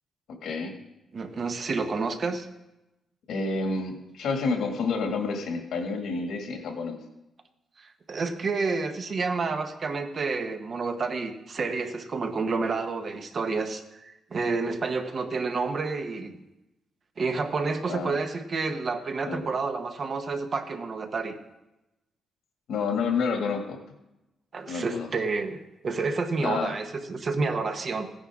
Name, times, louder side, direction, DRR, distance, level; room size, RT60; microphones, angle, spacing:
voice 1, 0.4-0.7 3.3-7.0 17.9-18.2 19.3-19.5 22.7-23.8 24.7-25.1 26.4-26.7, left 4 dB, 75° left, 3 dB, 2.1 m, -29 dB
voice 2, 1.1-2.5 7.8-16.4 17.2-21.4 24.5-25.6 25.8-28.1, right 4 dB, 35° right, 6 dB, 1.0 m, -29 dB
16.0 x 9.9 x 3.7 m, 0.93 s
cardioid pair, 165°, 0 cm